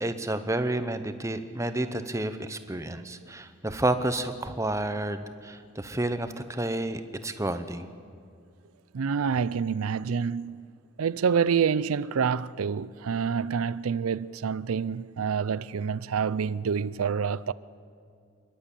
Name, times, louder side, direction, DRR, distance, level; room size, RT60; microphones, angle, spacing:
voice 1, 0.0-7.9, right 1 dB, 15° right, 0.8 m, -30 dB
voice 2, 8.9-10.7 11.0-17.5, right 6 dB, 80° right, 0.4 m, -27 dB
27.5 x 11.5 x 8.4 m
head